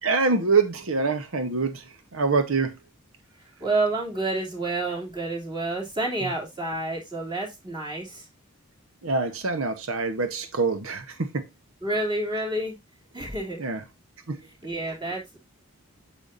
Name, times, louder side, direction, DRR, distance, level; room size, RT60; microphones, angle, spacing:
voice 1, 0.0-2.8 9.0-11.4 13.2-13.3 13.6-13.8 14.3-14.4, right 4 dB, 75° right, 0.9 m, -25 dB
voice 2, 3.6-8.3 11.8-12.8 13.1-13.6 14.6-15.4, right 2 dB, 20° right, 2.8 m, -29 dB
8.8 x 7.0 x 2.5 m
head